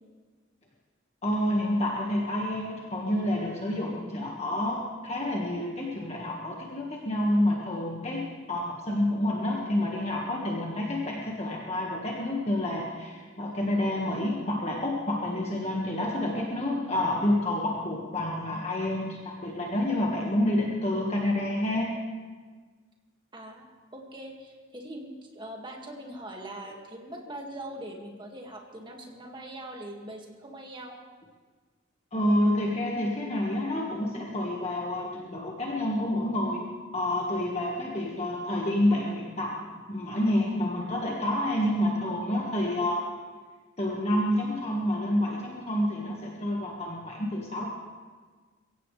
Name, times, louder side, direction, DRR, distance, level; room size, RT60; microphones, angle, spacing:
voice 1, 1.2-22.0 32.1-36.6 36.9-43.1 43.8-47.6, left 1 dB, 35° left, -2 dB, 1.7 m, -28 dB
voice 2, 23.3-31.0, right 1 dB, 25° right, 1 dB, 2.1 m, -42 dB
23.5 x 16.0 x 3.3 m, 1.4 s
head